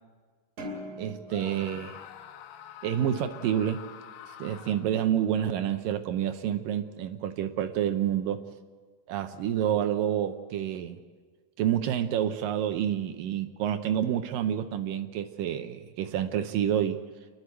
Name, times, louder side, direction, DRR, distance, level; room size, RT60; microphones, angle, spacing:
sound 1, 0.6-3.1, left 1 dB, 45° right, 3.9 m, -43 dB
voice 1, 1.0-2.0 2.8-3.8 4.4-8.4 9.1-11.0 11.6-17.0, right 10 dB, 75° right, 8 dB, 2.1 m, -28 dB
Screaming, 1.3-5.1, left 9 dB, 85° left, 2.9 m, -46 dB
28.0 x 11.5 x 8.1 m, 1.5 s
omnidirectional pair, 4.7 m